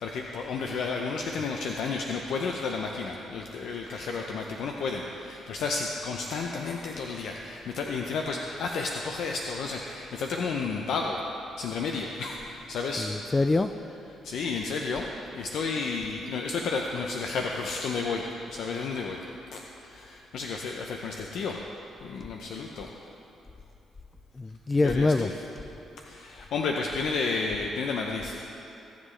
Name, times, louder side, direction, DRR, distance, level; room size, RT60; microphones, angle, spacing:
voice 1, 0.0-11.2 11.6-13.1 14.2-19.2 19.5-21.6 22.0-22.9 24.8-25.3 26.0-28.5, left 4 dB, 75° left, 1 dB, 0.6 m, -32 dB
voice 2, 13.0-13.7 22.2-22.3 24.3-25.3, left 3 dB, 25° left, 10 dB, 0.3 m, -25 dB
17.0 x 7.6 x 3.3 m, 2.9 s
cardioid pair, 90°, 0 cm